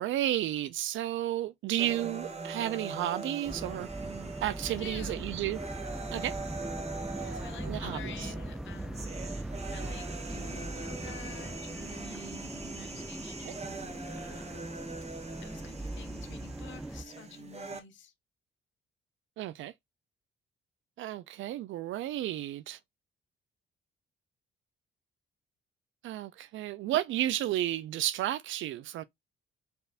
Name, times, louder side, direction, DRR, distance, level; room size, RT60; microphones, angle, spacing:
voice 1, 0.0-3.9 4.4-5.6 6.1-6.3 7.6-8.3 13.4-13.5 19.4-19.7 21.0-22.8 26.0-29.0, right 13 dB, 75° right, 0.4 m, -32 dB
sound 1, 1.8-17.8, right 3 dB, 35° right, 1.1 m, -42 dB
sound 2, 3.4-17.0, right 1 dB, 5° right, 0.3 m, -40 dB
voice 2, 4.6-5.3 7.2-14.7 15.4-18.1, left 8 dB, 70° left, 1.1 m, -50 dB
4.3 x 3.4 x 2.4 m
cardioid pair, 90°, 20 cm